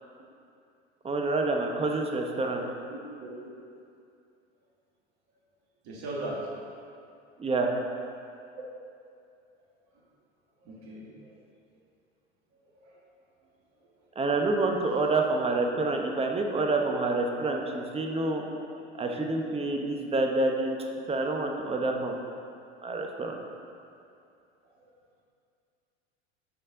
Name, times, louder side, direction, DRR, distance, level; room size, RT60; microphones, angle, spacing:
voice 1, 1.0-2.6 7.4-7.7 14.2-18.4 19.0-20.8 21.1-22.1 22.8-23.4, right 2 dB, 15° right, 2 dB, 0.9 m, -27 dB
voice 2, 3.2-3.5 5.9-6.4 8.6-8.7 10.6-11.1 12.8-12.9 16.9-17.0 17.6-17.7 18.5-18.6, right 2 dB, 50° right, -4 dB, 1.7 m, -38 dB
12.0 x 4.3 x 3.8 m, 2.5 s
hypercardioid pair, 80°, 34 cm